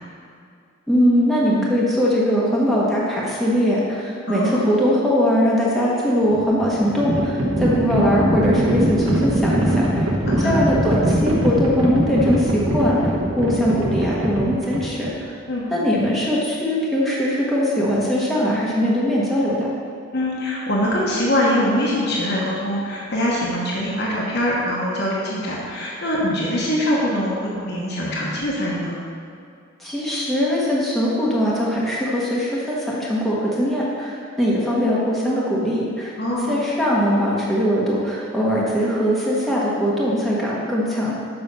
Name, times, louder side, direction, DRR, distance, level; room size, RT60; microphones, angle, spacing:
voice 1, 0.9-10.1 10.4-13.0 13.3-15.3 15.7-19.7 29.8-36.1 36.5-41.1, equal, ahead, -7 dB, 1.0 m, -21 dB
voice 2, 4.2-4.7 10.2-10.6 15.5-15.6 20.1-29.0 36.2-36.5, equal, 50° left, -5 dB, 1.2 m, -23 dB
Livestock farm animals working animals, 6.2-15.3, right 1 dB, 75° right, 1.1 m, -22 dB
7.1 x 5.5 x 5.3 m, 2.3 s
head